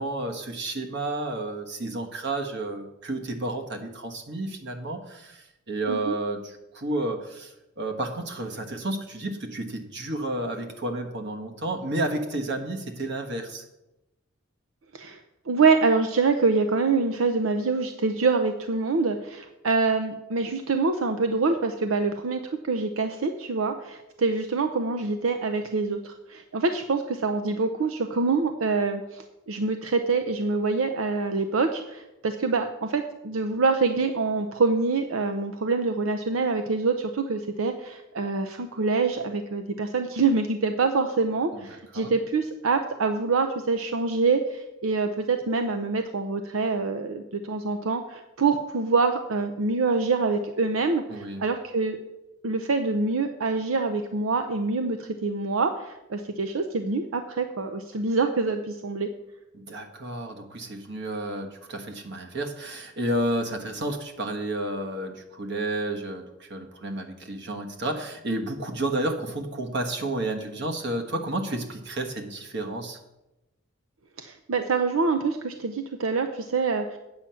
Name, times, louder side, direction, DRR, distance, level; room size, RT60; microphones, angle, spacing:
voice 1, 0.0-13.6 41.5-42.1 51.1-51.4 59.5-73.0, right 1 dB, 55° right, 4 dB, 1.3 m, -31 dB
voice 2, 15.5-52.0 52.4-59.1 74.2-77.0, right 4 dB, 80° right, 6 dB, 0.6 m, -25 dB
8.7 x 5.7 x 7.5 m, 0.94 s
head